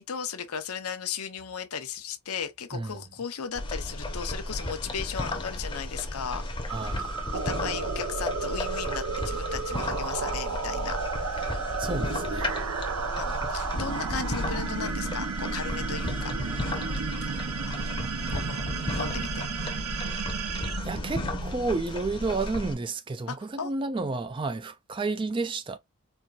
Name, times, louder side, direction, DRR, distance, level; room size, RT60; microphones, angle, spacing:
voice 1, 0.0-7.1 7.3-11.5 13.2-17.3 17.7-17.9 18.3-19.4 23.3-23.7, left 7 dB, 85° left, 0.7 m, -36 dB
sound 1, 3.6-22.7, left 1 dB, 20° left, 0.7 m, -34 dB
voice 2, 6.7-7.1 11.8-12.5 20.1-20.3 20.8-25.8, right 3 dB, 20° right, 0.3 m, -31 dB
sound 2, 6.7-21.8, right 5 dB, 90° right, 0.6 m, -33 dB
4.3 x 2.5 x 2.3 m
head